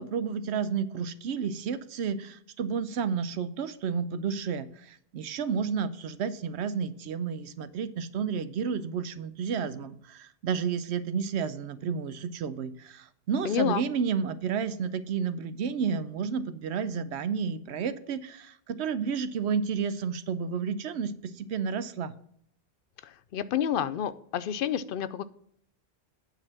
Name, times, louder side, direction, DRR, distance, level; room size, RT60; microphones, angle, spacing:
voice 1, 0.0-22.1, right 6 dB, 85° right, 13 dB, 0.9 m, -31 dB
voice 2, 13.4-13.8 23.0-25.2, left 9 dB, 65° left, 14 dB, 0.7 m, -29 dB
9.0 x 4.2 x 7.3 m, 0.66 s
omnidirectional pair, 1.1 m